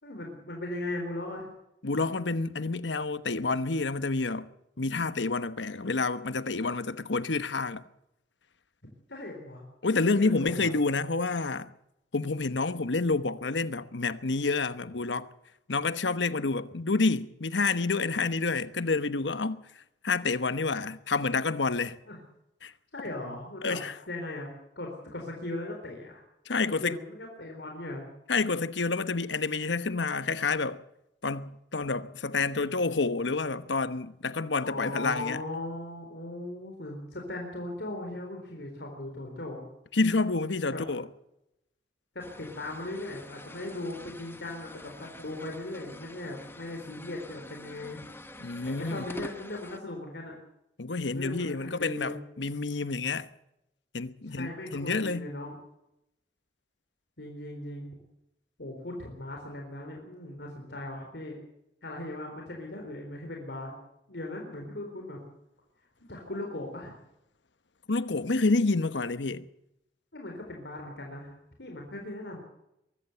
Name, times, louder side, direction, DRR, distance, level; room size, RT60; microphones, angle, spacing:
voice 1, 0.0-1.5 9.1-9.6 10.1-10.7 22.1-22.2 22.9-23.8 24.1-26.2 26.6-28.1 34.6-39.6 40.7-40.8 42.1-48.0 48.6-50.3 51.1-52.2 54.3-55.6 57.2-57.9 58.6-61.4 61.8-63.7 64.1-65.2 66.1-67.0 70.1-71.3 71.6-72.4, left 1 dB, 70° left, 4.1 m, -38 dB
voice 2, 1.8-4.5 4.8-7.8 9.8-11.7 12.1-15.3 15.7-19.6 20.0-22.0 22.6-22.7 23.6-23.9 26.5-27.0 28.3-30.8 31.2-35.4 39.9-41.1 48.4-49.0 50.8-53.3 53.9-55.3 67.9-69.5, left 3 dB, 85° left, 1.1 m, -28 dB
sound 1, 42.2-49.8, left 1 dB, 15° left, 1.3 m, -47 dB
23.0 x 14.5 x 8.0 m
head